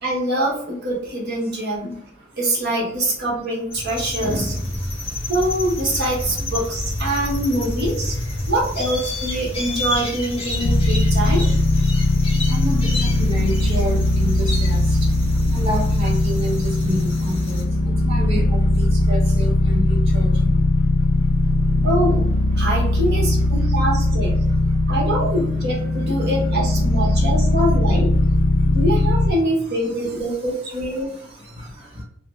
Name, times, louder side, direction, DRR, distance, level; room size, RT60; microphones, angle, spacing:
voice 1, 0.0-2.0 2.4-4.5 5.3-8.1 8.5-11.5 21.8-22.3 22.6-24.3 24.9-28.1 28.7-31.1, right 1 dB, 55° right, -2 dB, 1.1 m, -24 dB
sound 1, 3.7-17.7, left 1 dB, 30° left, 1.0 m, -29 dB
sound 2, 10.6-29.3, left 2 dB, 80° left, 0.5 m, -19 dB
voice 2, 12.5-14.8 15.5-17.6 18.1-18.4 18.8-19.8 20.1-20.3, right 1 dB, 30° right, -6 dB, 0.9 m, -28 dB
3.0 x 2.4 x 3.1 m, 0.69 s
head